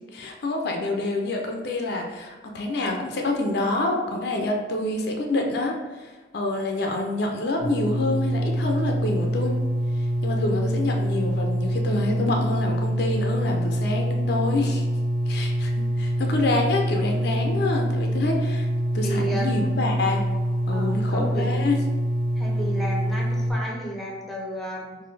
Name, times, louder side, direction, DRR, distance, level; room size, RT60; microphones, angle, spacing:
voice 1, 0.1-9.5 10.2-14.8 15.3-18.7 18.9-20.2 20.7-21.8, left 2 dB, 60° left, 2 dB, 0.5 m, -27 dB
sound 1, 7.6-23.5, equal, 25° right, 1.2 m, -25 dB
voice 2, 19.0-19.5 20.7-21.5 22.4-25.0, right 1 dB, ahead, -3 dB, 0.6 m, -32 dB
4.0 x 2.6 x 3.2 m, 1.3 s
head